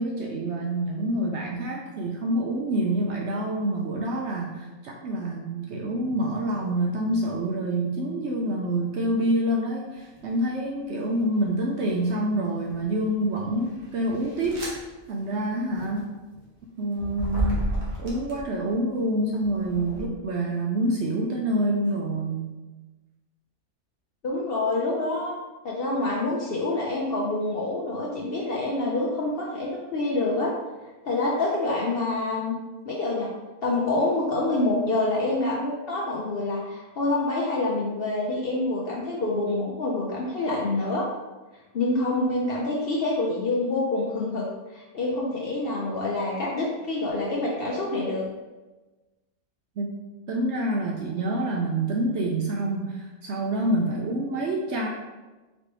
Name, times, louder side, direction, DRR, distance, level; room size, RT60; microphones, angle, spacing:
voice 1, 0.0-14.6 15.1-16.1 16.8-17.6 18.0-22.5 49.8-50.0 50.3-54.9, right 1 dB, 65° right, -1 dB, 0.7 m, -27 dB
sound 1, 10.0-10.3 10.9-11.7 12.3-18.7 19.3-20.0, right 1 dB, 40° right, 1.2 m, -33 dB
voice 2, 24.2-25.3 25.6-30.5 31.0-32.5 32.9-33.3 33.6-41.1 41.7-48.3, left 2 dB, 60° left, -4 dB, 0.6 m, -26 dB
4.3 x 3.1 x 3.0 m, 1.2 s
omnidirectional pair, 1.5 m